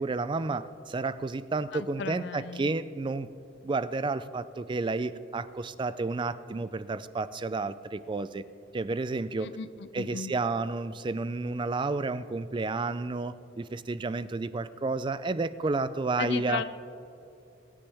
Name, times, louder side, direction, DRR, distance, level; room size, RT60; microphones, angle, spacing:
voice 1, 0.0-3.3 3.6-8.4 8.7-9.5 9.9-16.6, right 3 dB, 25° right, 14 dB, 0.3 m, -31 dB
voice 2, 1.7-2.7 9.4-10.3 16.2-16.6, left 6 dB, 60° left, 12 dB, 0.5 m, -35 dB
22.5 x 9.9 x 3.4 m, 2.7 s
head